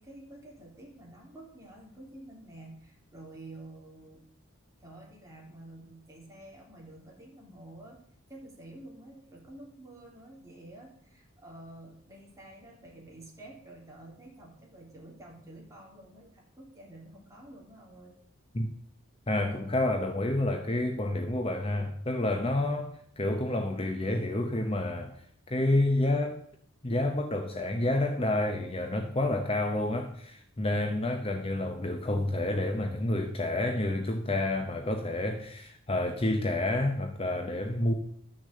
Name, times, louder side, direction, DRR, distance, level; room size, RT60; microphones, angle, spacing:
voice 1, 0.0-4.2 4.8-18.2, right 1 dB, 15° right, 3.2 m, -49 dB
voice 2, 19.3-22.9 23.2-25.1 25.5-26.4 26.8-37.9, left 1 dB, 25° left, 0.8 m, -29 dB
12.5 x 6.4 x 7.7 m
head